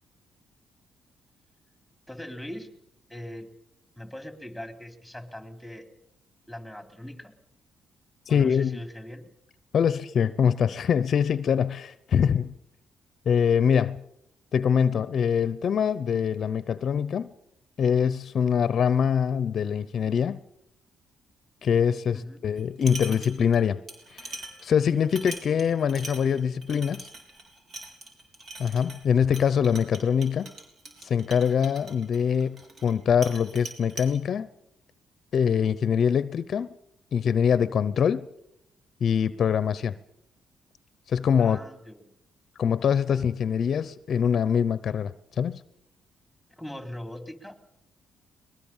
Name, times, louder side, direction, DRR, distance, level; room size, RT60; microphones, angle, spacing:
voice 1, 2.1-2.7 3.1-3.5 4.0-5.9 6.5-7.3 8.3-9.3 22.1-22.4 41.4-42.1 46.6-47.6, left 1 dB, ahead, 3.3 m, -40 dB
voice 2, 8.3-8.8 9.7-12.5 13.3-14.0 14.5-17.3 17.8-20.4 21.6-23.8 24.1-27.1 28.6-30.5 31.0-34.5 35.3-36.7 37.1-38.3 39.0-40.0 41.1-41.6 42.6-45.6, left 7 dB, 55° left, 0.7 m, -24 dB
sound 1, 22.6-23.6 23.9-33.0 33.2-34.1, right 2 dB, 50° right, 5.8 m, -42 dB
22.0 x 21.0 x 7.3 m
cardioid pair, 90°, 0 cm